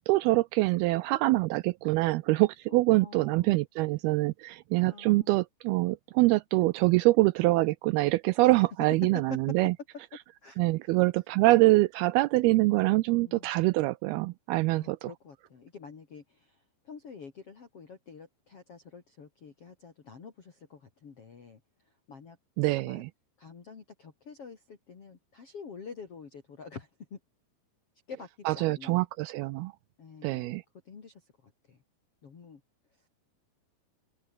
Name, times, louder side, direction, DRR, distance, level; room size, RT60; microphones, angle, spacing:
voice 1, 0.1-9.7 10.6-15.1 22.6-23.1 28.5-29.7 30.2-30.6, right 20 dB, 85° right, 2.3 m, -25 dB
voice 2, 2.7-3.6 4.8-5.3 9.3-9.4 10.4-10.6 13.1-13.5 14.7-22.4 22.7-23.0 23.4-27.2 28.1-29.0 30.0-30.6 30.8-31.8 32.2-32.6 33.0-33.1, left 5 dB, 40° left, 3.2 m, -48 dB
open air
omnidirectional pair, 4.9 m